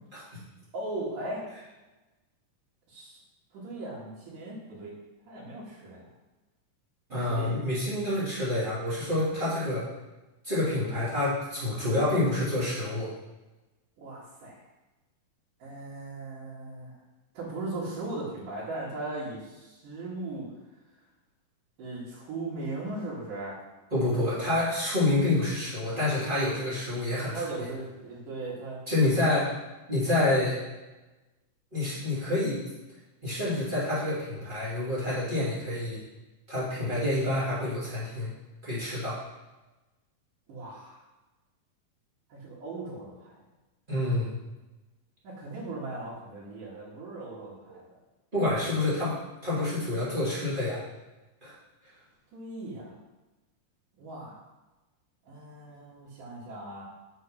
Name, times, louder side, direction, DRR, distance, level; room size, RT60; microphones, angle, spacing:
voice 1, 0.7-1.5 2.9-3.2 3.5-4.9 5.3-6.1 7.1-7.6 14.0-14.6 15.6-17.0 17.3-20.5 21.8-23.6 27.3-28.8 40.5-41.0 42.3-43.4 45.2-47.8 52.3-52.9 54.0-54.4 55.3-56.8, right 2 dB, 75° right, -9 dB, 3.6 m, -38 dB
voice 2, 7.1-9.8 10.4-13.1 23.9-27.7 28.9-29.5 29.9-30.6 31.7-32.6 33.2-36.0 36.5-38.3 38.6-39.2 43.9-44.3 48.3-49.2 49.4-50.8 51.4-51.5, left 2 dB, 15° right, -10 dB, 3.0 m, -28 dB
6.7 x 6.5 x 5.6 m, 1.1 s
omnidirectional pair, 3.8 m